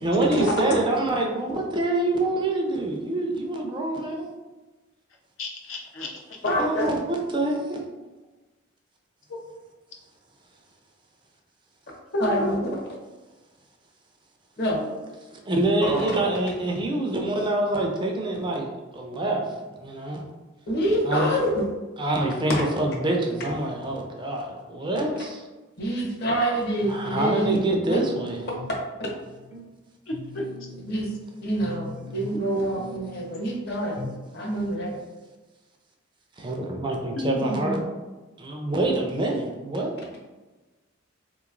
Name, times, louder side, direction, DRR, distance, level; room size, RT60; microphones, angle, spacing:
voice 1, 0.0-4.3 6.6-7.8 15.3-18.7 18.9-19.4 19.8-20.2 21.1-21.3 22.0-25.4 26.9-28.4 36.4-37.8 38.4-39.9, right 2 dB, 25° right, 1 dB, 0.4 m, -26 dB
voice 2, 5.4-6.1 12.1-12.6 15.8-16.2 30.1-30.5 37.2-37.9, equal, 80° left, -1 dB, 0.7 m, -30 dB
voice 3, 6.4-6.9 12.2-12.6 14.6-14.9 20.7-21.6 25.8-28.0 30.9-31.1 31.4-35.0, right 1 dB, 55° left, -2 dB, 0.9 m, -26 dB
sound 1, 26.8-27.6 28.0-28.8 29.2-29.7 30.1-31.3 31.6-32.5 32.7-33.5 34.0-34.3 34.5-34.6, left 2 dB, 35° left, 0.6 m, -41 dB
3.8 x 3.0 x 2.5 m, 1.2 s
head